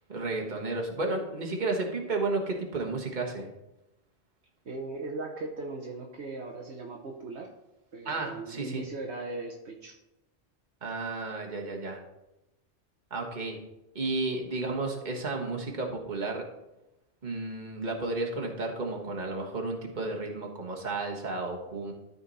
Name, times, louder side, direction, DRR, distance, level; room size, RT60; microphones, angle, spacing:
voice 1, 0.1-3.5 8.0-8.8 10.8-12.0 13.1-13.6 13.9-16.5 17.2-21.9, right 3 dB, 40° right, 0 dB, 1.6 m, -32 dB
voice 2, 4.7-7.5 7.9-10.0, right 3 dB, 70° right, 1 dB, 1.2 m, -38 dB
13.0 x 4.5 x 4.1 m, 0.92 s
omnidirectional pair, 1.2 m